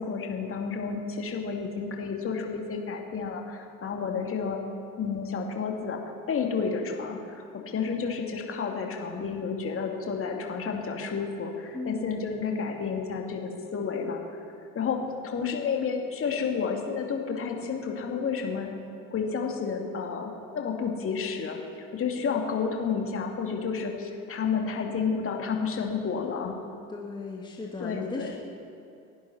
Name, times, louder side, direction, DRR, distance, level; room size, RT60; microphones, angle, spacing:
voice 1, 0.0-4.6 5.0-6.0 6.3-14.2 14.7-18.7 19.1-21.6 21.9-26.6 27.8-28.3, left 5 dB, 30° left, 1 dB, 2.6 m, -31 dB
voice 2, 11.7-12.3 22.2-22.4 26.9-28.4, left 3 dB, 10° left, -2 dB, 2.0 m, -36 dB
29.5 x 11.5 x 4.3 m, 2.7 s
figure-of-eight pair, 70°, 43 cm